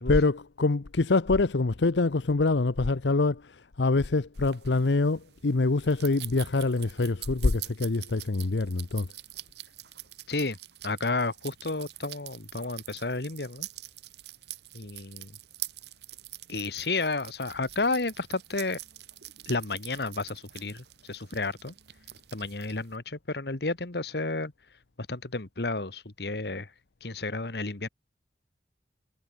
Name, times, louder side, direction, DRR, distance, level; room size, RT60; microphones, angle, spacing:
voice 1, 0.1-9.1, left 3 dB, 85° left, 0.8 m, -25 dB
sound 1, 4.3-23.0, right 15 dB, 70° right, 1.5 m, -45 dB
voice 2, 10.3-10.6 10.8-13.7 14.7-15.4 16.5-18.8 19.5-21.7 22.3-24.5 25.0-26.7 27.0-27.9, left 3 dB, 65° left, 1.5 m, -31 dB
head